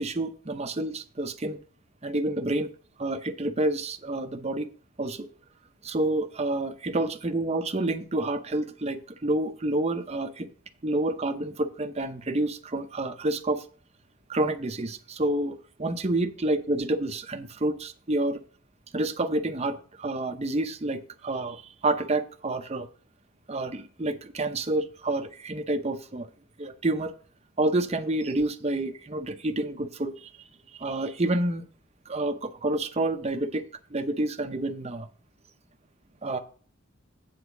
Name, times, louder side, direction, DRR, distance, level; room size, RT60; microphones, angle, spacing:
voice 1, 0.0-1.6 2.0-2.7 3.0-4.7 5.0-5.3 5.8-10.5 10.8-13.6 14.3-18.4 18.9-22.9 23.5-26.3 26.6-27.1 27.6-30.3 30.8-31.7 32.1-33.6 33.9-35.1 36.2-36.4, right 2 dB, 30° right, 7 dB, 0.7 m, -28 dB
8.2 x 4.2 x 7.0 m, 0.42 s
head